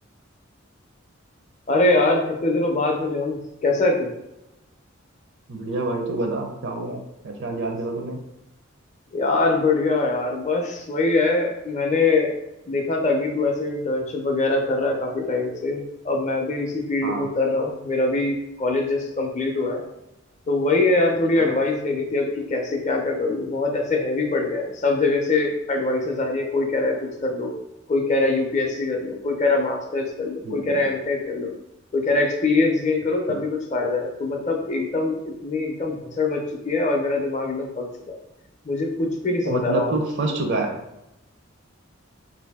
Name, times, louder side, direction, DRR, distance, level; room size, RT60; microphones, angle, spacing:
voice 1, 1.7-4.1 9.1-12.3 12.7-19.8 20.5-27.5 27.9-31.5 31.9-38.2 38.6-40.0, left 3 dB, 35° left, 2 dB, 0.5 m, -23 dB
voice 2, 5.5-8.2 17.0-17.3 21.4-21.5 30.4-30.9 33.3-33.4 39.4-40.7, right 2 dB, 60° right, 3 dB, 0.5 m, -27 dB
2.6 x 2.6 x 3.5 m, 0.90 s
head